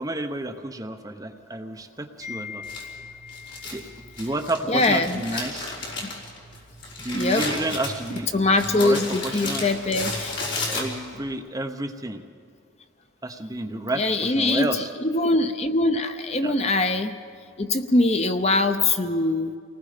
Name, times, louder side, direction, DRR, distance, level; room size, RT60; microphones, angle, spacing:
voice 1, 0.0-2.6 3.7-3.9 4.2-5.7 7.0-8.3 8.8-9.7 10.6-12.2 13.2-14.9 16.4-16.5, right 1 dB, 15° right, 5 dB, 0.9 m, -30 dB
voice 2, 2.2-3.7 4.7-5.2 6.0-6.1 7.1-7.5 8.3-10.3 10.6-10.8 13.9-17.2 17.6-19.5, left 2 dB, 30° left, 8 dB, 0.7 m, -23 dB
Crumpling crinkling, 2.6-11.3, left 2 dB, 55° left, 4.2 m, -33 dB
28.5 x 19.5 x 5.1 m, 2.2 s
head